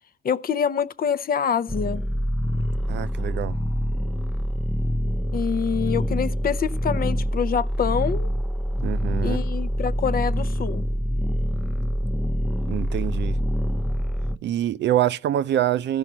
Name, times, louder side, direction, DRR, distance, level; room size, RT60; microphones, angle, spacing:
voice 1, 0.2-2.0 5.3-8.3 9.2-10.8, left 7 dB, 50° left, 0.6 m, -26 dB
sound 1, 1.7-14.3, equal, ahead, 0.7 m, -25 dB
voice 2, 2.9-3.6 8.8-9.4 12.7-13.4 14.4-16.0, right 11 dB, 65° right, 0.5 m, -25 dB
14.0 x 5.5 x 7.3 m
cardioid pair, 90°, 20 cm